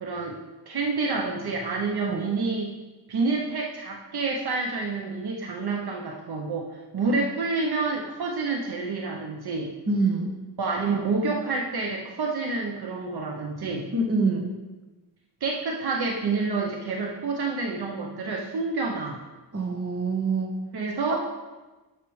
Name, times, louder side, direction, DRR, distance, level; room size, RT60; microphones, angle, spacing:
voice 1, 0.0-0.4 0.7-2.7 3.1-9.8 10.6-13.9 15.4-19.2 20.7-21.3, right 3 dB, 65° right, 0 dB, 0.9 m, -28 dB
voice 2, 9.9-10.3 13.9-14.5 19.5-20.6, right 3 dB, 35° right, 1 dB, 1.2 m, -25 dB
10.0 x 6.6 x 3.2 m, 1.2 s
wide cardioid pair, 130°, 42 cm